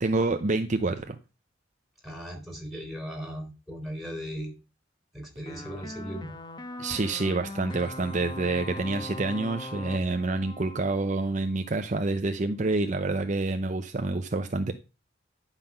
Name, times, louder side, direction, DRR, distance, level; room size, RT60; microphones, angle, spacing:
voice 1, 0.0-1.2 6.8-14.7, right 2 dB, 40° right, 0.6 m, -27 dB
voice 2, 2.0-4.5 5.1-6.4, equal, ahead, 3.6 m, -37 dB
sound 1, 5.5-11.6, left 1 dB, 25° left, 1.1 m, -40 dB
10.5 x 5.8 x 5.6 m
head